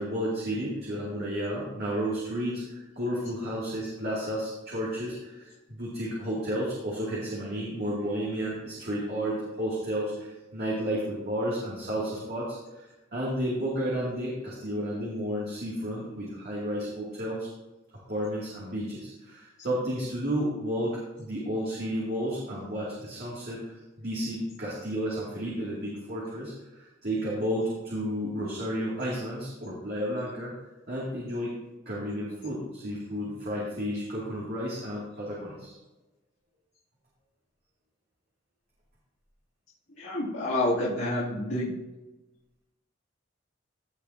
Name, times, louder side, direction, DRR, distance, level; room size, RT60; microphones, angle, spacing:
voice 1, 0.0-17.5 18.1-30.5 30.9-31.6 31.9-35.8, equal, 55° right, -6 dB, 2.4 m, -32 dB
voice 2, 40.0-41.7, left 1 dB, 65° left, -10 dB, 2.7 m, -28 dB
16.5 x 6.8 x 2.8 m, 1.1 s
head